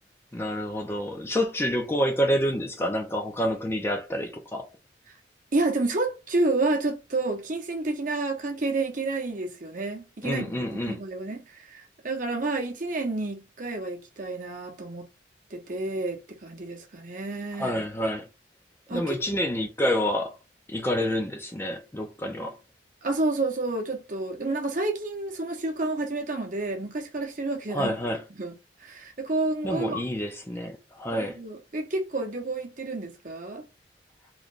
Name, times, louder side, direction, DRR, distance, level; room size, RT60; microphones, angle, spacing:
voice 1, 0.3-4.7 10.2-11.0 17.6-18.3 18.9-20.3 20.7-22.6 27.7-28.2 29.6-31.4, equal, 15° left, 0.4 m, -28 dB
voice 2, 5.5-15.0 15.5-17.8 18.9-19.4 23.0-28.0 28.4-28.6 28.8-30.0 31.1-33.7, right 2 dB, 45° right, 0.8 m, -30 dB
3.1 x 2.2 x 3.8 m
head